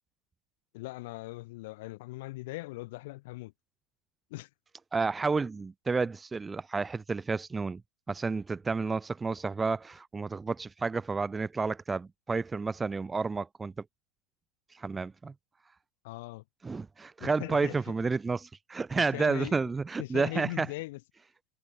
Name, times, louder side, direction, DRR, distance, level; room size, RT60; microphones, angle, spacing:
voice 1, 0.7-3.5 4.3-4.5 16.0-16.4 17.2-17.9 18.9-19.6 20.0-21.0, left 21 dB, 50° left, 1.4 m, -40 dB
voice 2, 4.9-7.8 8.1-13.7 14.7-15.3 16.6-20.7, right 4 dB, 15° right, 0.3 m, -31 dB
figure-of-eight pair, 90°, 0 cm